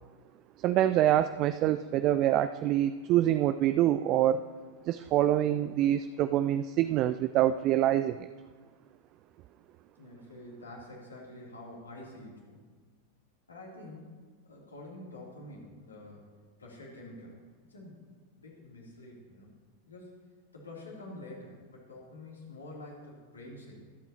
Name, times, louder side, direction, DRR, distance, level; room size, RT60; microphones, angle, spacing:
voice 1, 0.6-4.4 4.9-8.3, right 12 dB, 40° right, 12 dB, 0.3 m, -26 dB
voice 2, 10.0-12.6 13.5-14.1 14.4-16.3 16.6-17.4 17.7-18.0 18.4-19.5 19.9-20.3 20.5-23.8, left 1 dB, 75° left, -3 dB, 3.0 m, -47 dB
23.5 x 8.1 x 2.9 m, 1.5 s
figure-of-eight pair, 90°, 0 cm